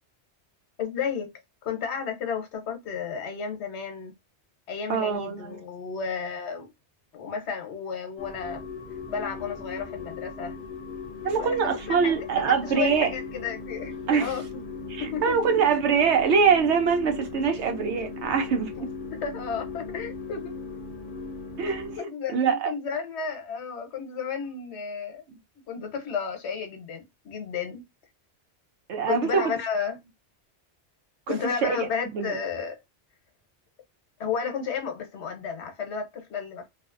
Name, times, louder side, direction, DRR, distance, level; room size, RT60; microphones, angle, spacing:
voice 1, 0.8-1.3 1.6-4.1 4.7-6.7 7.1-8.7 9.1-10.6 11.4-11.6 11.9-12.0 12.4-14.6 15.0-15.4 18.8-18.9 19.1-20.5 22.0-25.2 25.7-27.8 29.1-30.0 31.3-32.8 34.2-36.7, left 6 dB, 75° left, 1.0 m, -32 dB
voice 2, 4.9-5.6 11.2-13.1 14.1-14.3 14.9-18.7 21.6-22.0 22.3-22.7 28.9-29.5 31.3-31.4 31.6-32.4, right 6 dB, 80° right, 0.9 m, -24 dB
sound 1, 8.2-22.0, left 4 dB, 50° left, 0.8 m, -38 dB
2.6 x 2.0 x 2.4 m
omnidirectional pair, 1.2 m